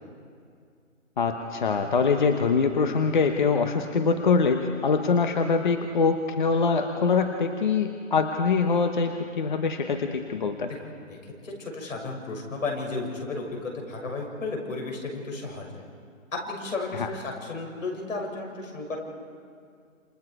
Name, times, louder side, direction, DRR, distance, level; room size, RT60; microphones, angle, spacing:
voice 1, 1.2-10.7 16.9-17.1, left 5 dB, 35° left, 6 dB, 1.0 m, -24 dB
voice 2, 10.6-11.2 11.4-15.7 16.3-19.0, left 3 dB, 75° left, 1 dB, 6.8 m, -33 dB
28.0 x 27.0 x 4.8 m, 2.2 s
hypercardioid pair, 165°, 39 cm